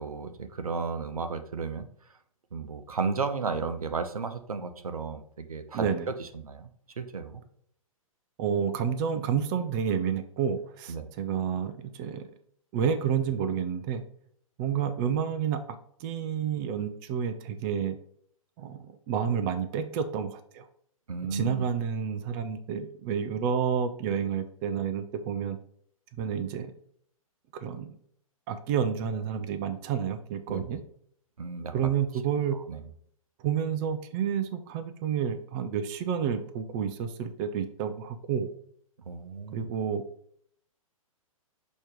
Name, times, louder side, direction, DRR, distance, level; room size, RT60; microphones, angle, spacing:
voice 1, 0.0-1.9 2.5-6.7 7.0-7.4 10.9-11.1 21.1-21.7 30.5-30.7 31.4-31.9 32.7-32.8 39.1-39.7, right 4 dB, 80° right, 9 dB, 0.8 m, -33 dB
voice 2, 5.7-6.1 8.4-12.2 12.7-14.0 14.6-15.6 16.0-18.0 18.6-20.7 21.3-25.6 26.2-26.7 27.5-28.0 28.5-30.8 31.7-32.6 33.4-38.5 39.5-40.0, right 7 dB, 35° right, 10 dB, 0.5 m, -30 dB
6.3 x 3.0 x 5.1 m, 0.65 s
figure-of-eight pair, 120°, 18 cm